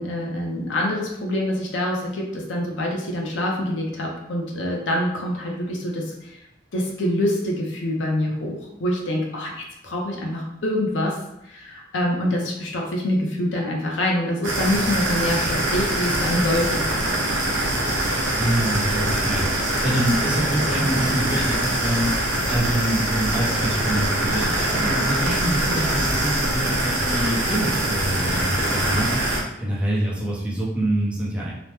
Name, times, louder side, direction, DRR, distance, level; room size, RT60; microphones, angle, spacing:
voice 1, 0.0-6.4 6.7-16.9, left 1 dB, 75° left, -1 dB, 0.6 m, -25 dB
sound 1, 14.4-29.4, right 1 dB, 80° right, 0.8 m, -23 dB
voice 2, 18.4-31.5, right 1 dB, 5° right, -7 dB, 0.7 m, -26 dB
2.9 x 2.1 x 3.3 m, 0.82 s
head